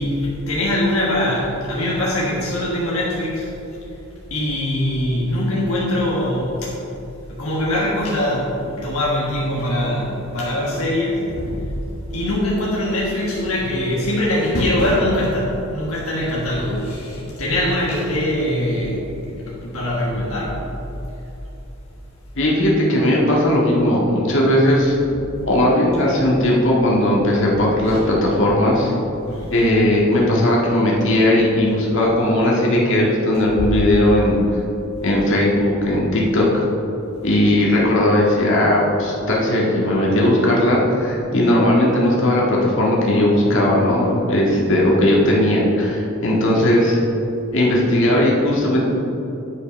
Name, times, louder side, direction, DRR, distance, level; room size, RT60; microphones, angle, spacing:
voice 1, 0.0-3.5 4.3-6.7 7.4-20.6 25.1-25.3 26.0-26.1 27.8-28.0 29.3-29.7 33.6-33.7, left 1 dB, 80° left, -5 dB, 1.4 m, -22 dB
voice 2, 22.4-25.0 25.4-28.9 29.5-34.4 35.0-36.5 37.2-47.0 47.5-48.8, left 1 dB, 60° left, -4 dB, 1.8 m, -17 dB
9.8 x 5.4 x 5.3 m, 2.9 s
head